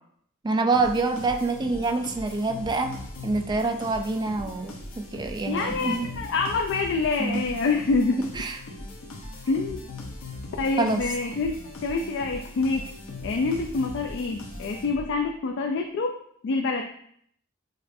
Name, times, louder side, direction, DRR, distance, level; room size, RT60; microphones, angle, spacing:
voice 1, 0.4-2.9 3.2-4.7 5.1-6.1 7.2-7.4 8.4-8.6 10.8-11.0, right 3 dB, 20° right, 6 dB, 0.3 m, -26 dB
sound 1, 0.7-15.3, left 2 dB, 85° left, 0.9 m, -39 dB
voice 2, 5.4-8.2 9.5-9.8 10.6-11.5 11.8-12.8 13.2-16.1 16.4-16.8, left 3 dB, 60° left, 3 dB, 0.3 m, -26 dB
6.5 x 2.4 x 2.6 m, 0.67 s
head